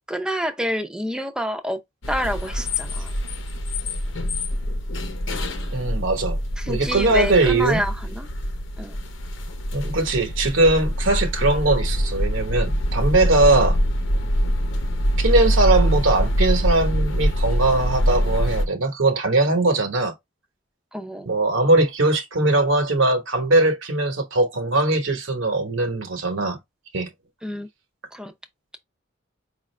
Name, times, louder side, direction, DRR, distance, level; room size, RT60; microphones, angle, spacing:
voice 1, 0.1-1.8 2.1-3.1 6.6-8.3 8.8-9.0 20.9-21.3 27.4-27.7 28.1-28.3, equal, 5° right, 0.5 m, -28 dB
sound 1, 2.0-18.7, equal, 75° left, 0.8 m, -24 dB
voice 2, 5.7-6.4 6.7-7.8 9.7-13.8 15.2-20.1 21.3-26.6 26.9-27.1, right 2 dB, 80° right, 1.1 m, -20 dB
4.9 x 2.5 x 3.2 m
head